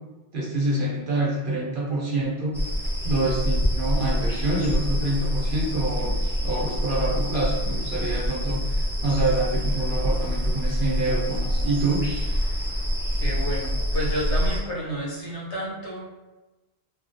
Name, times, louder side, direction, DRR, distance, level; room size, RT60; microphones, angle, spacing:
voice 1, 0.3-2.5 3.0-12.1, right 2 dB, 55° right, -4 dB, 0.7 m, -26 dB
sound 1, 2.5-14.6, equal, ahead, 0.7 m, -26 dB
voice 2, 13.1-16.0, equal, 85° left, -5 dB, 1.2 m, -30 dB
2.7 x 2.3 x 2.5 m, 1.1 s
omnidirectional pair, 1.1 m